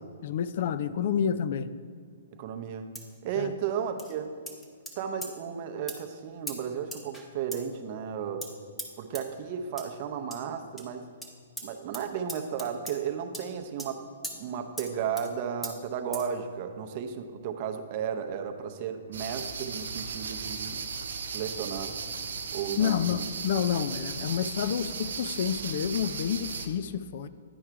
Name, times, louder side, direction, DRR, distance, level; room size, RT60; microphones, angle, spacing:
voice 1, 0.2-1.7 3.4-3.5 22.8-27.3, left 8 dB, 55° left, 13 dB, 0.3 m, -29 dB
voice 2, 2.3-2.9 3.2-4.4 5.0-8.5 9.0-11.1 11.6-14.0 14.3-20.8 21.3-22.0 22.5-23.0, right 7 dB, 45° right, 6 dB, 0.7 m, -34 dB
sound 1, 3.0-3.2 4.0-4.1 4.5-5.0 5.2-5.3 5.9-6.0 6.5-6.6 6.9-7.3 7.5-7.6 8.4-8.5 8.8-8.9 9.1-9.2 9.8-9.9 10.3-10.4 10.8-10.9 11.2-11.3 11.6-11.7 11.9-12.0 12.3-13.0 13.3-13.4 13.8-13.9 14.2-14.4 14.8-14.9 15.2-15.3 15.6-15.7 16.1-16.3, equal, 5° left, 0.9 m, -38 dB
sound 2, 19.1-26.7, right 5 dB, 80° right, 0.8 m, -36 dB
10.0 x 4.8 x 4.6 m, 2.2 s
hypercardioid pair, 140°, 0 cm